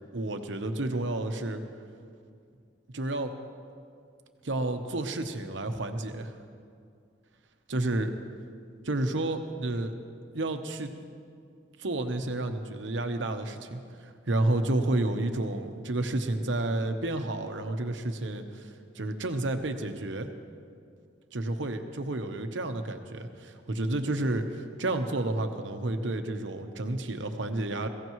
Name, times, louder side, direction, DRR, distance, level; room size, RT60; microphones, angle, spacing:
voice 1, 0.1-1.6 2.9-3.4 4.4-6.3 7.7-8.1 8.8-9.9 10.3-10.9 11.8-20.3 21.3-27.9, right 2 dB, 80° right, 6 dB, 1.0 m, -30 dB
21.5 x 16.0 x 3.1 m, 2.3 s
head